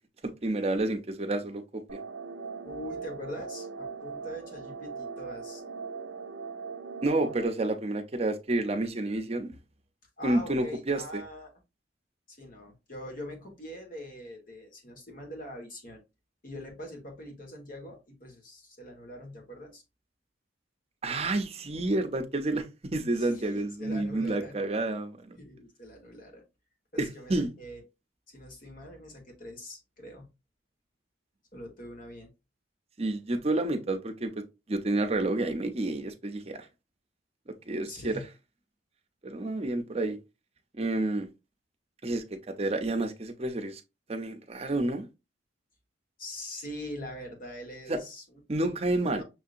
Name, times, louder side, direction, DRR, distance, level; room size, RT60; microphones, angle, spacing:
voice 1, 0.2-2.0 7.0-9.6 10.2-11.2 21.0-25.4 27.0-27.5 33.0-36.7 37.7-38.2 39.2-40.2 40.8-41.3 42.0-43.8 44.1-45.1 47.9-48.0 48.5-49.2, right 2 dB, 30° right, 0.6 m, -30 dB
sound 1, 1.9-7.5, right 5 dB, 80° right, 0.6 m, -40 dB
voice 2, 2.6-5.6 10.2-11.5 12.3-16.0 16.4-19.8 23.1-24.6 25.4-26.4 26.9-27.8 28.3-30.3 31.5-32.3 37.9-38.3 46.2-49.2, left 1 dB, 45° left, 1.3 m, -43 dB
6.2 x 2.8 x 2.5 m
head